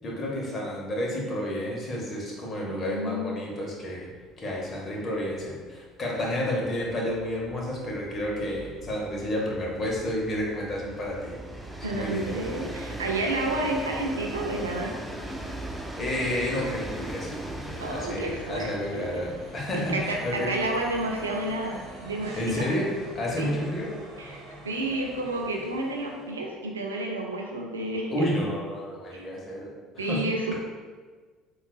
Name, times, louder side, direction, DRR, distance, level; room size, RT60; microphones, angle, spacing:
voice 1, 0.0-4.1 4.4-11.3 11.9-12.4 15.8-20.5 22.4-22.9 23.1-23.9 28.1-29.7 29.9-30.2, left 1 dB, 35° left, -3 dB, 0.9 m, -31 dB
voice 2, 2.6-3.3 11.8-15.0 17.8-19.2 19.9-22.7 23.4-23.6 24.2-28.3 29.1-29.2 30.0-30.5, right 1 dB, 85° right, 1 dB, 0.3 m, -30 dB
Train, 4.2-4.4 4.7-4.8 5.1-22.5, right 1 dB, 5° right, 0.4 m, -40 dB
sound 1, 7.1-26.5, right 2 dB, 60° right, 0.9 m, -46 dB
3.8 x 2.3 x 2.3 m, 1.4 s
hypercardioid pair, 60°, 0 cm